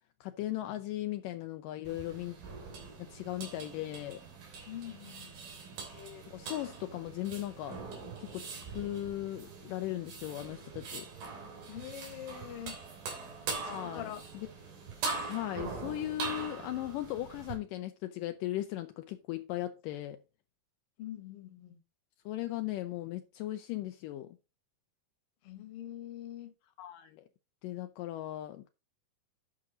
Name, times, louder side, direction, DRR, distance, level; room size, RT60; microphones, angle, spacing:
voice 1, 0.2-2.4 3.0-4.2 5.9-7.8 8.2-11.1 13.6-14.5 15.3-20.2 22.3-24.4 26.8-27.2 27.6-28.7, left 14 dB, 80° left, 2.1 m, -38 dB
sound 1, 1.8-17.5, right 4 dB, 85° right, 4.9 m, -42 dB
voice 2, 4.7-5.3 11.7-12.8 13.6-14.2 21.0-21.8 25.4-26.5, left 11 dB, 50° left, 2.0 m, -44 dB
11.0 x 6.1 x 3.9 m
omnidirectional pair, 4.2 m